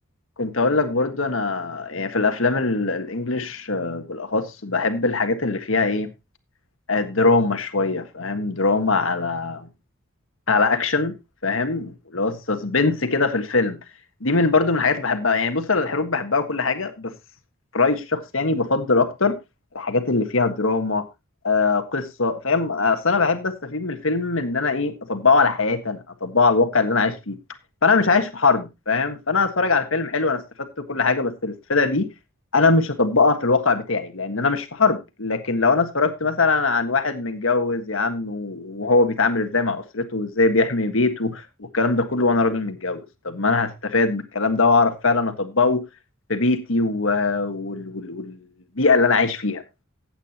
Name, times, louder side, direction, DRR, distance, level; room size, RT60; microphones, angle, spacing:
voice 1, 0.4-6.1 6.9-9.7 10.5-11.1 11.4-13.8 14.2-17.1 17.7-19.4 19.7-21.1 21.4-27.3 27.8-32.1 32.5-45.8 46.3-48.4 48.8-49.6, left 3 dB, 75° left, 1.5 m, -22 dB
15.5 x 9.0 x 2.9 m
head